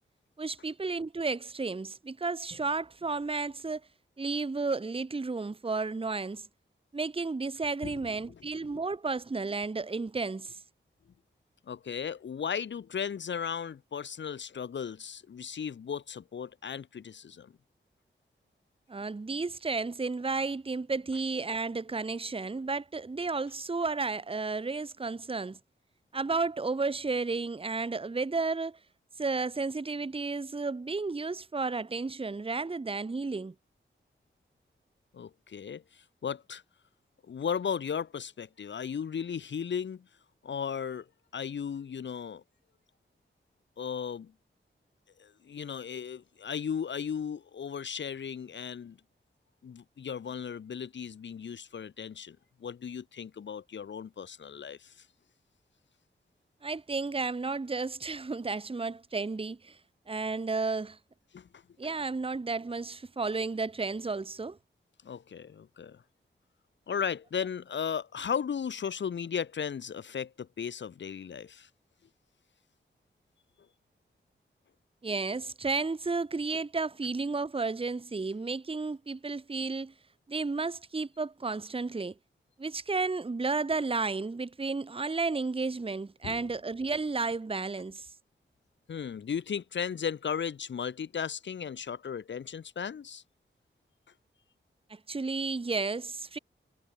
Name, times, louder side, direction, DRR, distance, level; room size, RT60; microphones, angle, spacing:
voice 1, 0.4-3.8 4.2-6.5 6.9-10.6 18.9-25.6 26.1-28.8 29.2-33.5 56.6-59.8 60.1-61.0 61.8-64.6 75.0-79.9 80.3-82.1 82.6-88.1 94.9-96.4, right 3 dB, 30° right, 1.0 m, -32 dB
voice 2, 11.7-17.5 35.1-36.6 37.2-40.1 40.4-41.1 41.3-42.4 43.8-44.3 45.2-49.0 49.6-55.1 61.3-61.6 65.0-66.0 66.9-71.7 86.2-86.5 88.9-93.2, left 7 dB, 65° left, 0.7 m, -36 dB
wide cardioid pair, 85°, 20 cm